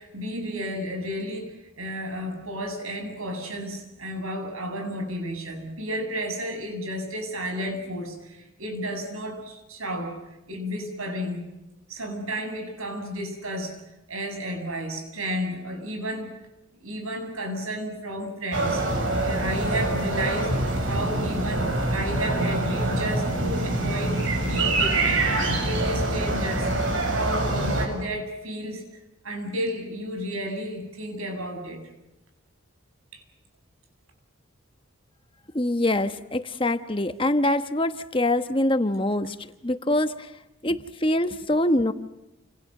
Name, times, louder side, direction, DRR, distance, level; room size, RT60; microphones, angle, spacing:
voice 1, 0.0-10.2 10.5-11.5 11.9-13.8 14.1-16.3 16.8-25.3 25.6-26.7 27.1-28.8 29.2-31.8 33.1-33.2, equal, 90° right, 6 dB, 7.9 m, -32 dB
sound 1, 18.5-27.9, right 2 dB, 65° right, 6.9 m, -25 dB
voice 2, 35.5-39.3 39.6-40.3 40.6-41.9, left 1 dB, 25° left, 10 dB, 1.1 m, -24 dB
29.5 x 27.0 x 6.6 m, 0.95 s
head